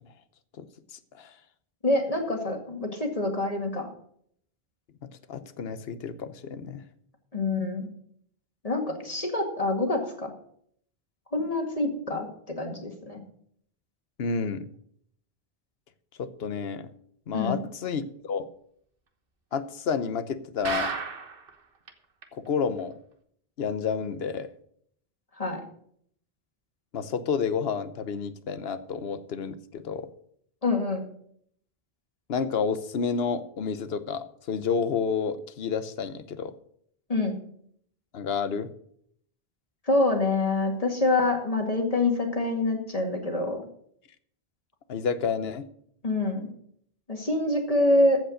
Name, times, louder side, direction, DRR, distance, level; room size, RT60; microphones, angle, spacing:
voice 1, 0.9-1.3 5.3-6.8 14.2-14.7 16.2-16.9 17.3-18.5 19.5-20.9 22.3-22.9 23.6-24.5 26.9-30.1 32.3-36.5 38.1-38.7 44.9-45.7, left 6 dB, 70° left, 12 dB, 1.1 m, -30 dB
voice 2, 1.8-3.9 7.3-7.9 8.6-10.3 11.3-12.3 12.6-13.2 17.3-17.6 25.4-25.6 30.6-31.0 37.1-37.4 39.9-43.6 46.0-46.5 47.1-48.2, left 2 dB, 35° left, 2 dB, 2.1 m, -26 dB
sound 1, 20.6-21.5 21.9-22.0 22.2-22.3 22.8-22.9, right 4 dB, 60° right, 1.4 m, -32 dB
15.0 x 5.2 x 6.4 m, 0.66 s
omnidirectional pair, 1.1 m